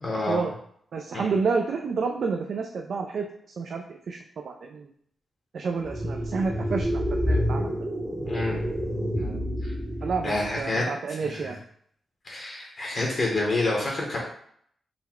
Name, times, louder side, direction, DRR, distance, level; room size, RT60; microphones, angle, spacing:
voice 1, 0.0-0.5 1.1-1.4 8.2-8.7 9.1-9.7 10.2-11.6 12.2-14.2, left 2 dB, 35° left, -2 dB, 0.8 m, -29 dB
voice 2, 0.9-3.3 3.6-4.2 4.4-4.9 5.5-7.7 8.4-8.6 10.0-11.6, right 5 dB, 55° right, 3 dB, 0.3 m, -29 dB
sound 1, 5.8-10.6, equal, 5° right, 0.7 m, -28 dB
3.9 x 2.1 x 4.3 m, 0.65 s
wide cardioid pair, 180°, 0 cm